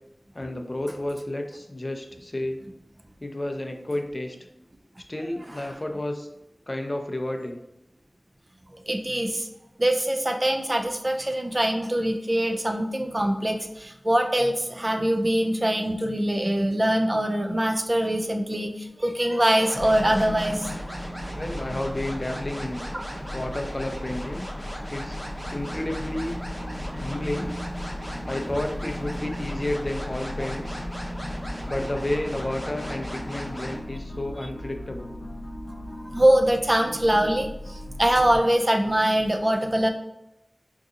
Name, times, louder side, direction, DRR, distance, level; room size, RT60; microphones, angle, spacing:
voice 1, 0.3-2.6 3.2-4.4 5.1-6.3 6.7-7.6 15.0-15.1 21.3-22.9 23.3-24.5 24.9-25.2 25.5-26.3 27.0-27.6 28.3-30.9 31.7-35.1, left 1 dB, 40° left, 4 dB, 0.4 m, -31 dB
voice 2, 8.9-9.5 9.8-20.7 22.9-23.0 36.1-39.9, right 1 dB, 35° right, 4 dB, 0.4 m, -23 dB
sound 1, 19.6-33.8, equal, 10° left, 0.8 m, -38 dB
sound 2, 19.7-38.4, equal, 85° left, 0.8 m, -36 dB
3.8 x 2.7 x 2.4 m, 0.87 s
wide cardioid pair, 50°, 0 cm